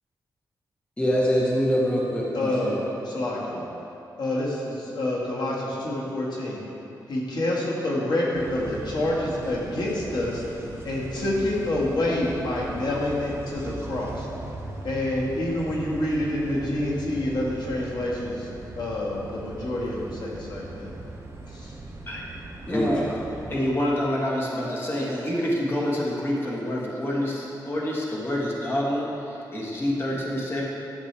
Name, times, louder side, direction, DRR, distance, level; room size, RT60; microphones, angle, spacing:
voice 1, 1.0-2.8 22.7-22.9, equal, 15° left, -4 dB, 0.9 m, -24 dB
voice 2, 2.3-3.6 4.2-6.6 7.1-10.4 10.8-14.3 14.8-18.5 18.8-20.9 21.5-21.7, left 1 dB, 70° left, -5 dB, 1.7 m, -27 dB
sound 1, 8.3-23.7, right 2 dB, 35° right, 0.7 m, -39 dB
voice 3, 22.7-23.1 23.5-30.6, left 1 dB, 30° left, -4 dB, 1.4 m, -27 dB
11.5 x 7.3 x 3.3 m, 3.0 s
wide cardioid pair, 145°, 8 cm